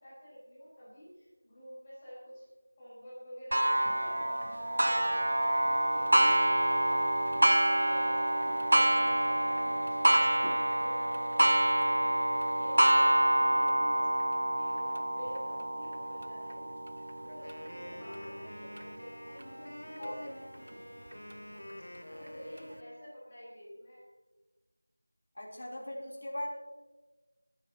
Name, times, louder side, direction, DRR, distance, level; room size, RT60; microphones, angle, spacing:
voice 1, 0.0-2.4 2.8-6.4 6.6-7.0 7.6-8.1 8.6-12.1 12.4-14.1 14.5-16.8 17.2-20.3 20.8-21.2 22.1-24.0, equal, 15° left, -10 dB, 4.8 m, -49 dB
Clock, 3.5-18.8 19.4-19.5 20.0-20.1 21.1-21.2, right 1 dB, 70° right, 0.4 m, -27 dB
Wind instrument woodwind instrument, 17.2-23.1, left 1 dB, 90° left, 2.2 m, -47 dB
voice 2, 25.4-26.6, left 1 dB, 50° left, -2 dB, 3.6 m, -39 dB
23.5 x 10.5 x 3.0 m, 1.2 s
figure-of-eight pair, 180°, 0 cm